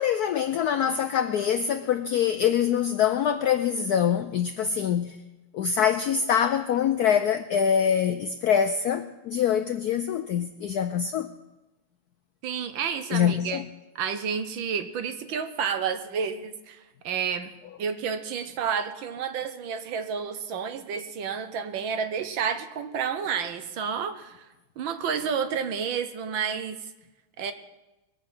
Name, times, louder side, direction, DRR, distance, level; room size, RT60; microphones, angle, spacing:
voice 1, 0.0-5.2 5.5-11.3 13.1-13.7, left 8 dB, 80° left, 0.8 m, -24 dB
voice 2, 12.4-13.6 13.9-16.8 17.0-17.5 17.8-24.5 24.8-26.8 27.4-27.5, right 7 dB, 70° right, 1.6 m, -30 dB
21.0 x 7.5 x 6.1 m
omnidirectional pair, 2.3 m